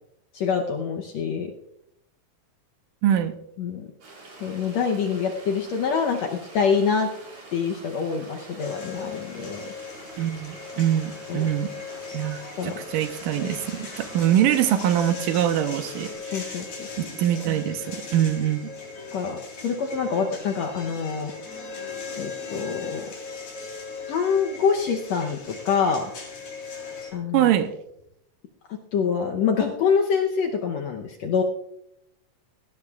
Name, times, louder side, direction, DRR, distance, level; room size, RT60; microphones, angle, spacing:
voice 1, 0.3-1.5 3.6-3.9 4.4-7.1 7.5-9.7 11.3-11.5 12.6-12.7 16.3-16.9 19.1-19.4 19.6-21.3 22.2-23.1 24.1-26.1 27.1-27.5 28.9-31.4, left 6 dB, 70° left, 2 dB, 1.7 m, -25 dB
voice 2, 3.0-3.3 10.2-11.7 12.1-16.6 17.0-18.6 27.3-27.7, right 11 dB, 80° right, 8 dB, 2.4 m, -24 dB
sound 1, 4.0-16.1, right 2 dB, 60° right, 6.0 m, -46 dB
sound 2, 8.6-27.1, left 4 dB, 55° left, 4.7 m, -38 dB
18.0 x 17.0 x 2.4 m, 0.79 s
omnidirectional pair, 4.0 m